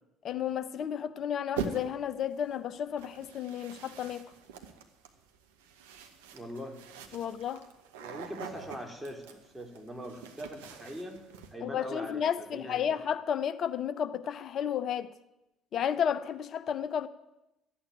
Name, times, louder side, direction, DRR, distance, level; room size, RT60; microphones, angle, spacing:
voice 1, 0.2-4.3 7.1-7.6 11.6-15.1 15.7-17.1, left 8 dB, 55° left, 0.9 m, -32 dB
sound 1, 1.6-2.1 3.0-11.5, right 6 dB, 80° right, 1.1 m, -43 dB
voice 2, 6.3-6.8 8.0-11.2 11.5-12.8, equal, 10° right, 3.6 m, -42 dB
13.0 x 8.8 x 9.1 m
hypercardioid pair, 55°, 0 cm